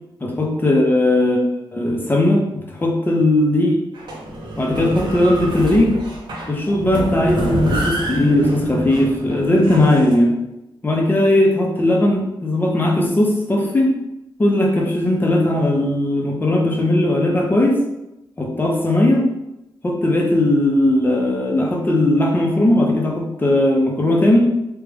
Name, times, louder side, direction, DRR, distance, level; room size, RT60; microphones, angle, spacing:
voice 1, 0.2-1.4 1.7-3.7 4.6-6.0 6.5-10.3 10.8-13.9 14.4-17.8 18.4-19.3 19.8-24.4, left 1 dB, 20° left, -1 dB, 0.9 m, -17 dB
sound 1, 3.9-10.2, right 1 dB, 60° right, 0.9 m, -26 dB
3.2 x 2.4 x 3.4 m, 0.91 s
cardioid pair, 85°, 9 cm